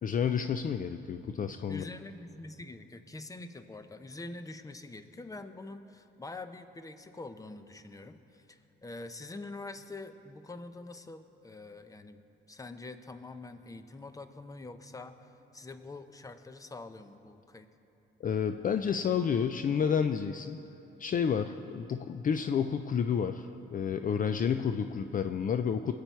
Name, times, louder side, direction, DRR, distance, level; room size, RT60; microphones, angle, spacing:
voice 1, 0.0-1.9 18.2-20.6 21.0-25.9, left 7 dB, 45° left, 9 dB, 0.5 m, -30 dB
voice 2, 1.7-12.2 12.5-17.7, left 2 dB, 15° left, 10 dB, 0.8 m, -45 dB
21.5 x 8.6 x 4.6 m, 2.9 s
cardioid pair, 90°, 20 cm